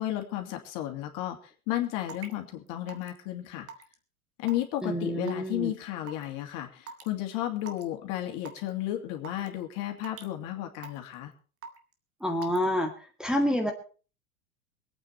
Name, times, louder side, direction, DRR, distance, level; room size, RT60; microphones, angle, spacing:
voice 1, 0.0-3.7 4.4-11.3, left 13 dB, 50° left, 4 dB, 2.8 m, -33 dB
Raindrop / Water tap faucet / Drip, 2.1-2.3 2.9-3.2 3.7-3.9 4.5-4.8 5.3-5.5 6.1-6.2 6.9-7.1 7.6-7.8 8.4-8.7 9.2-9.5 10.0-10.3 10.8-11.1 11.6-11.9 12.4-12.6, right 6 dB, 30° right, 2.1 m, -42 dB
voice 2, 4.8-5.7 12.2-12.9 13.2-13.7, equal, ahead, 1 dB, 2.0 m, -27 dB
23.0 x 9.0 x 4.4 m, 0.38 s
hypercardioid pair, 90°, 43 cm